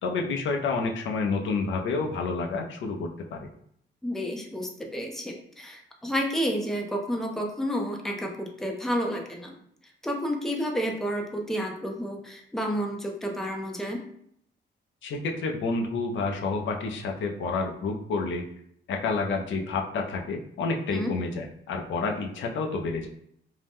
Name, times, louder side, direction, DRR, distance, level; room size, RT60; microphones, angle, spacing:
voice 1, 0.0-3.4 15.0-18.4 18.9-23.1, left 4 dB, 80° left, 2 dB, 0.5 m, -29 dB
voice 2, 4.0-9.5 10.0-14.0 20.9-21.1, equal, ahead, 1 dB, 0.5 m, -30 dB
2.6 x 2.1 x 3.4 m, 0.70 s
cardioid pair, 100°, 20 cm